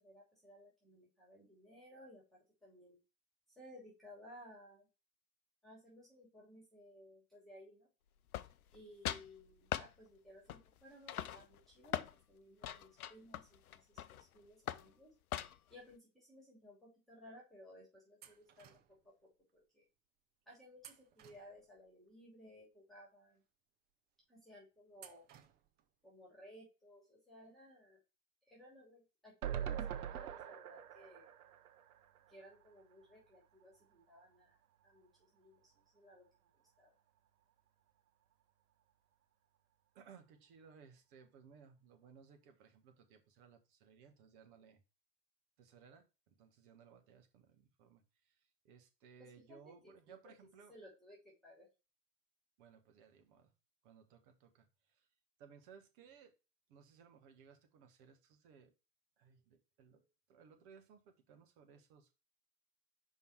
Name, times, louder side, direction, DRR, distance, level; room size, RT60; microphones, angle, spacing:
voice 1, 0.0-3.0 3.6-4.9 5.6-7.9 8.7-15.1 15.7-19.9 20.5-23.4 24.3-25.2 26.0-28.0 28.5-31.3 32.3-34.6 34.8-36.2 36.5-36.9 49.2-50.3 50.7-51.7, equal, ahead, -4 dB, 2.7 m, -59 dB
sound 1, 8.3-8.8 9.1-9.3 9.7-9.9 10.5-10.8 11.1-12.1 12.6-14.2 14.7-14.9 15.3-15.7, left 11 dB, 70° left, 0.6 m, -41 dB
sound 2, 18.2-19.1 20.8-21.9 25.0-25.9, right 10 dB, 20° right, 0.5 m, -60 dB
sound 3, 29.4-32.7 33.0-33.1 33.3-33.4, right 9 dB, 70° right, 0.7 m, -43 dB
voice 2, 39.9-44.8 45.6-48.3 48.6-50.7 52.6-53.5 53.8-54.7 55.0-55.1 55.4-56.3 56.7-58.7 59.2-62.1, right 6 dB, 45° right, 6 dB, 1.5 m, -61 dB
5.3 x 4.7 x 4.5 m, 0.29 s
figure-of-eight pair, 90°, 46 cm